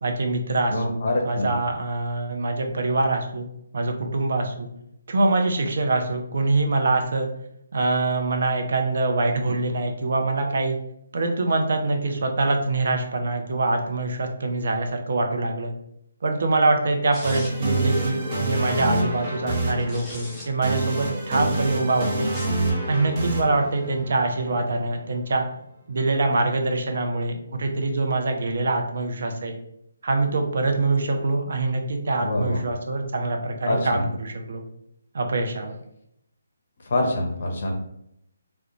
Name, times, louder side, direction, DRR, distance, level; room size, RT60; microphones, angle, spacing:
voice 1, 0.0-4.7 5.1-7.3 7.7-10.8 11.1-15.7 16.2-22.3 22.9-25.4 25.9-29.5 30.0-34.6 35.1-35.8, right 2 dB, 55° right, 4 dB, 0.4 m, -24 dB
voice 2, 0.7-1.5 32.2-32.6 33.6-34.1 36.8-37.7, left 1 dB, 50° left, 1 dB, 0.6 m, -25 dB
sound 1, 17.1-17.8 19.7-20.5 22.2-22.6, left 1 dB, 5° left, 0.5 m, -40 dB
sound 2, 17.2-25.1, right 2 dB, 30° right, 0.7 m, -27 dB
2.3 x 2.1 x 2.9 m, 0.77 s
figure-of-eight pair, 145°, 0 cm